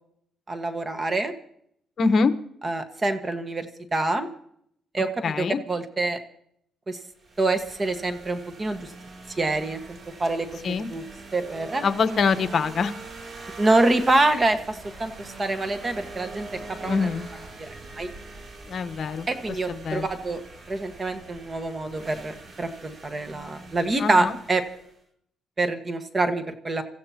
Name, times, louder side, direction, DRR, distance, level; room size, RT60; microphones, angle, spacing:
voice 1, 0.5-1.3 2.6-4.3 4.9-6.2 6.9-7.0 7.4-8.9 9.4-11.0 11.3-11.8 13.6-17.1 17.6-18.1 19.3-20.4 20.7-24.6 25.6-26.8, right 2 dB, 30° right, 8 dB, 1.6 m, -26 dB
voice 2, 2.0-2.3 5.2-5.6 10.6-10.9 11.8-13.0 16.8-17.3 18.7-19.3 19.7-20.1 24.0-24.4, left 5 dB, 50° left, 9 dB, 1.1 m, -24 dB
sound 1, 7.2-25.0, right 2 dB, 45° right, 3.1 m, -43 dB
28.0 x 15.0 x 2.9 m, 0.70 s
cardioid pair, 90°, 0 cm